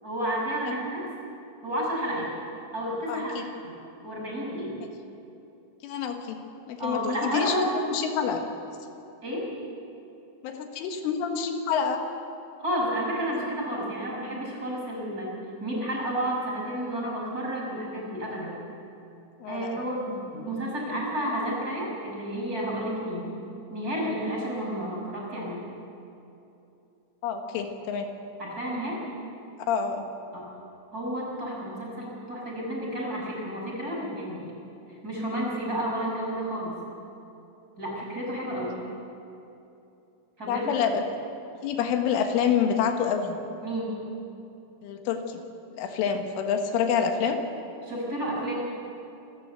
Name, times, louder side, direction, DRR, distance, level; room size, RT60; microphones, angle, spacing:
voice 1, 0.0-1.1 1.6-2.3 2.7-3.3 3.6-3.7 4.0-4.7 6.8-7.7 9.2-9.5 12.6-15.3 15.6-18.5 19.5-23.3 23.7-25.6 28.4-29.0 30.3-30.5 30.9-34.5 34.9-36.8 37.8-38.8 40.4-40.7 43.6-44.0 47.8-48.5, equal, 20° right, -3 dB, 5.8 m, -31 dB
voice 2, 3.1-3.5 5.8-6.4 6.7-8.4 10.4-12.0 19.4-19.8 27.2-28.1 29.7-30.1 40.5-41.1 41.6-43.4 44.8-45.4 45.7-47.4, left 7 dB, 80° left, 4 dB, 4.1 m, -27 dB
27.5 x 13.5 x 7.9 m, 2.8 s
omnidirectional pair, 5.6 m